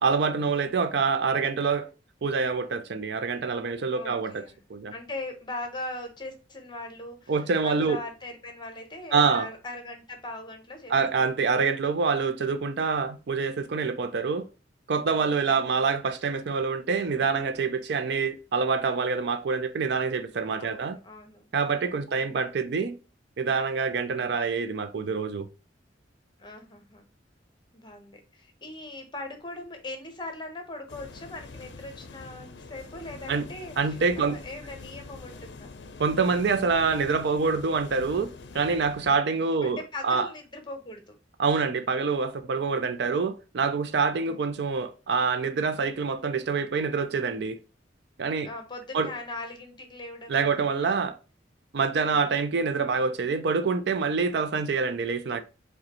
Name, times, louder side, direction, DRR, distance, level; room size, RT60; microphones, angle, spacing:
voice 1, 0.0-1.9 2.2-4.4 4.7-4.9 7.3-8.0 9.1-9.5 10.9-14.5 14.9-21.0 21.5-22.9 23.4-25.5 33.3-33.5 33.8-34.4 36.0-39.8 40.0-40.3 41.4-47.6 48.2-48.5 48.9-49.1 50.3-51.2 51.7-55.4, right 5 dB, 65° right, 0.4 m, -26 dB
voice 2, 3.9-4.6 4.9-7.3 7.6-11.3 15.3-15.7 20.6-21.5 22.1-22.5 24.1-24.3 26.4-27.0 27.7-35.8 39.6-41.2 44.1-44.4 48.4-51.1 52.0-52.3, left 2 dB, 25° left, 0.8 m, -40 dB
sound 1, 30.9-39.2, left 3 dB, 70° left, 0.5 m, -45 dB
4.8 x 2.2 x 2.9 m
head